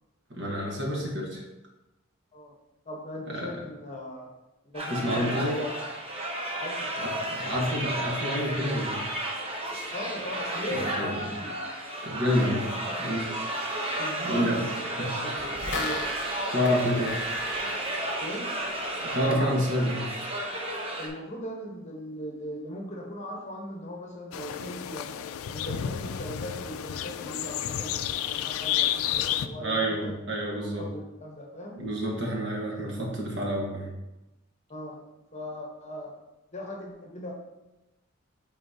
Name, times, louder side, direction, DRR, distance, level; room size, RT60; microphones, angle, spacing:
voice 1, 0.3-1.4 3.3-3.5 4.9-5.6 7.0-9.0 10.7-11.2 12.0-12.7 13.0-13.3 14.3-14.6 15.0-15.1 16.5-17.2 19.1-20.0 24.6-24.7 29.5-30.9 31.8-33.9, equal, 60° right, -1 dB, 1.4 m, -28 dB
voice 2, 2.9-4.3 4.6-5.7 6.6-7.1 9.9-11.6 12.6-13.0 14.0-16.1 18.2-18.5 19.3-19.9 21.0-25.2 25.5-30.1 30.8-31.8 34.7-35.0 35.3-36.1 36.5-37.3, equal, 35° left, 0 dB, 1.0 m, -39 dB
sound 1, 4.7-21.1, right 1 dB, 30° right, 0.8 m, -33 dB
sound 2, 15.4-18.9 19.2-19.3, left 1 dB, 55° left, 0.8 m, -36 dB
sound 3, 24.3-29.5, left 11 dB, 90° left, 0.3 m, -31 dB
8.4 x 4.0 x 2.7 m, 0.99 s
head